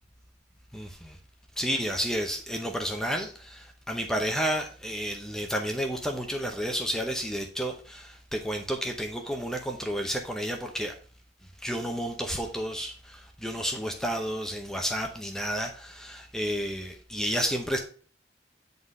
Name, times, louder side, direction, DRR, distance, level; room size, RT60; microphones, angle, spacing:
voice 1, 0.7-1.2 1.6-11.0 11.6-17.8, equal, 5° left, 0.7 m, -31 dB
7.8 x 4.0 x 4.8 m
head